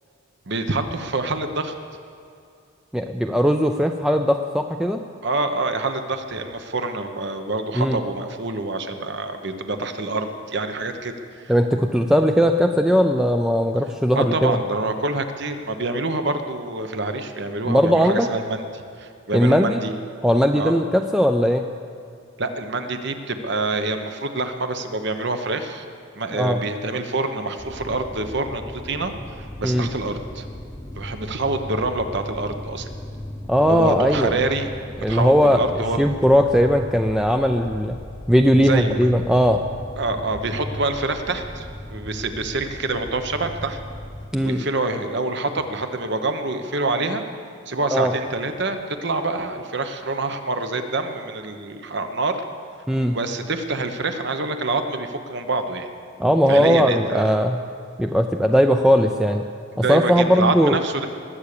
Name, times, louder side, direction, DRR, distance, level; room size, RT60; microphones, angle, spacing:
voice 1, 0.5-1.7 5.2-11.4 14.1-19.9 20.6-20.8 22.4-25.8 26.2-30.5 31.0-32.9 33.7-34.7 35.1-36.2 38.6-39.1 40.0-43.8 44.4-47.2 47.7-52.4 53.1-55.9 56.5-57.3 59.7-61.1, right 3 dB, 60° right, 7 dB, 1.0 m, -26 dB
voice 2, 2.9-5.0 7.7-8.0 11.5-14.6 17.7-18.3 19.3-19.8 20.2-21.6 26.3-26.6 29.6-29.9 33.5-34.4 35.0-38.0 38.3-39.6 44.3-44.6 47.9-48.1 52.9-53.2 56.2-57.6 58.0-59.4 59.8-60.8, equal, 5° right, 4 dB, 0.5 m, -19 dB
sound 1, 27.6-44.3, left 1 dB, 20° left, 0.8 m, -36 dB
20.0 x 8.6 x 6.8 m, 2.5 s
head